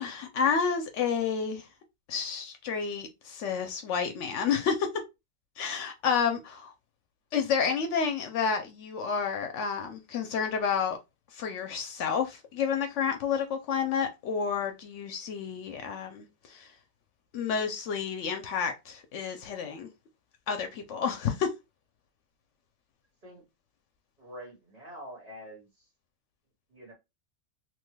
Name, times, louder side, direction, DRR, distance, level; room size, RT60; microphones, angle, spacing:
voice 1, 0.0-1.7 2.1-4.9 5.6-6.7 7.3-11.0 11.3-16.7 17.3-19.9 20.5-21.5, left 6 dB, 80° left, 0.9 m, -30 dB
voice 2, 24.2-25.9 26.7-26.9, equal, 35° right, 1.4 m, -46 dB
3.0 x 2.2 x 3.1 m
omnidirectional pair, 1.2 m